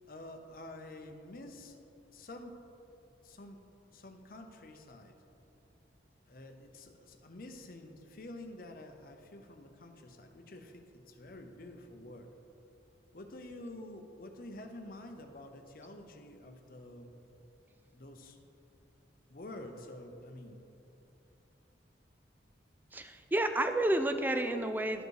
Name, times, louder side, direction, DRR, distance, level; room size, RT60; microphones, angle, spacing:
voice 1, 0.1-1.8 2.1-2.5 3.2-3.6 3.9-5.2 6.3-12.3 13.1-17.1 17.9-18.4 19.3-20.6, left 1 dB, 50° left, 5 dB, 0.7 m, -48 dB
voice 2, 22.9-25.0, right 1 dB, 10° right, 7 dB, 0.4 m, -30 dB
12.0 x 5.3 x 4.7 m, 2.9 s
head